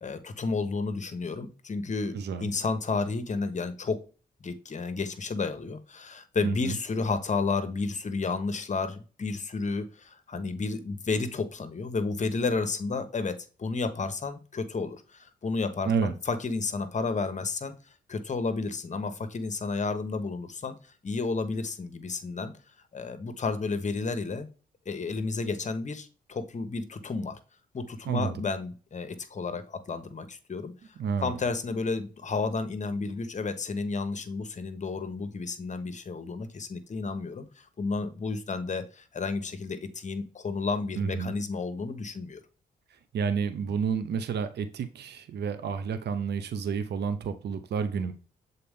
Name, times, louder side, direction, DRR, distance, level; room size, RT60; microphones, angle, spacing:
voice 1, 0.0-4.0 4.4-22.5 22.9-24.5 24.9-27.4 27.7-30.9 31.2-42.4, left 4 dB, 40° left, 9 dB, 1.0 m, -32 dB
voice 2, 2.1-2.5 6.4-6.7 15.9-16.1 28.1-28.3 31.0-31.4 41.0-41.3 43.1-48.1, right 6 dB, 70° right, 10 dB, 0.7 m, -30 dB
6.8 x 4.0 x 3.6 m, 0.36 s
cardioid pair, 60°, 18 cm